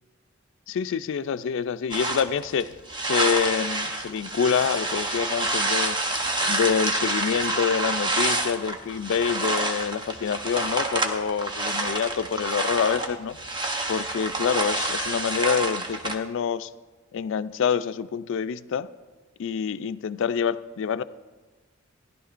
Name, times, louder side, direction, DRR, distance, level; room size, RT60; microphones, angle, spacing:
voice 1, 0.7-2.8 3.1-6.0 6.4-13.4 13.9-16.7 17.1-18.9 19.4-21.0, left 7 dB, 65° left, 15 dB, 0.3 m, -26 dB
sound 1, 1.9-16.2, right 2 dB, 25° right, 0.8 m, -28 dB
17.0 x 11.0 x 2.5 m, 1.3 s
head